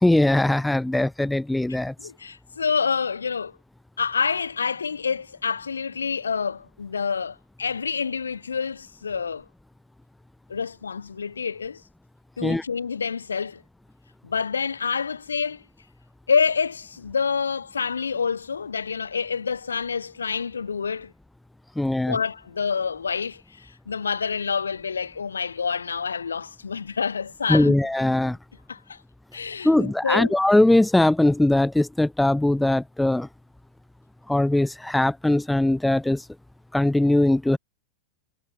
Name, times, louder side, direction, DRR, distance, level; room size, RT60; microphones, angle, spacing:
voice 1, 0.0-1.9 12.4-12.6 21.7-22.2 27.5-28.4 29.6-33.3 34.3-36.2 36.7-37.6, left 1 dB, 5° left, 3.4 m, -20 dB
voice 2, 2.0-3.6 4.0-9.5 10.5-11.8 12.4-13.6 14.2-15.6 16.3-21.1 22.1-27.8 28.7-29.0 29.3-30.4, left 6 dB, 75° left, 5.7 m, -27 dB
figure-of-eight pair, 90°, 0 cm